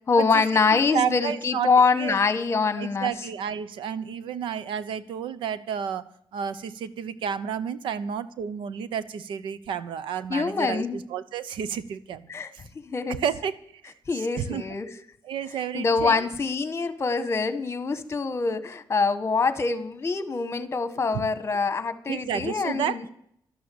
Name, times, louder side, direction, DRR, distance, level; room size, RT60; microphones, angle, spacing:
voice 1, 0.1-3.1 10.3-11.0 12.3-12.5 12.9-13.2 14.1-14.9 15.7-23.0, left 4 dB, 30° left, 12 dB, 1.4 m, -24 dB
voice 2, 0.7-1.7 2.0-2.2 2.8-6.0 6.3-12.6 13.1-13.5 13.8-14.6 15.2-16.3 21.1-21.2 22.1-23.1, right 8 dB, 90° right, 15 dB, 0.9 m, -31 dB
12.5 x 8.8 x 8.6 m, 0.67 s
cardioid pair, 115°, 8 cm